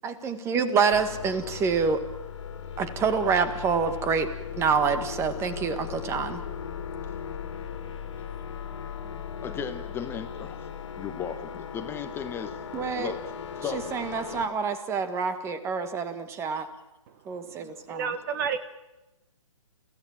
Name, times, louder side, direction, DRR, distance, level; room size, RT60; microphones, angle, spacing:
voice 1, 0.0-2.0 2.8-4.3 4.6-6.4 12.7-13.1 13.7-16.7 17.3-18.1, right 5 dB, 15° right, 10 dB, 1.8 m, -27 dB
sound 1, 0.9-14.5, left 7 dB, 60° left, 2.6 m, -38 dB
voice 2, 9.4-10.7 11.0-13.8 16.5-16.6, left 7 dB, 15° left, 7 dB, 1.3 m, -36 dB
voice 3, 17.4-18.6, right 6 dB, 35° right, 12 dB, 1.2 m, -31 dB
30.0 x 16.5 x 7.5 m, 1.0 s
figure-of-eight pair, 135°, 18 cm